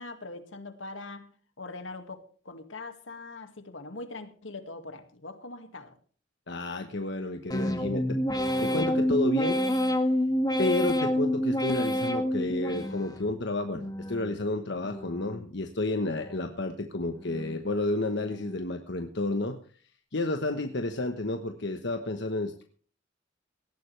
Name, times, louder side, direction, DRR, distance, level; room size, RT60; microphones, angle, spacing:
voice 1, 0.0-2.2 2.4-5.9, left 3 dB, 80° left, 2.1 m, -42 dB
voice 2, 6.5-8.2 8.6-9.6 9.9-10.0 10.6-19.6 20.1-22.6, left 2 dB, 60° left, 1.2 m, -31 dB
sound 1, 7.5-13.3 13.7-14.4 14.8-15.5 15.9-16.6 17.0-17.6 18.1-18.7, equal, 20° left, 1.8 m, -29 dB
18.5 x 14.5 x 3.4 m
head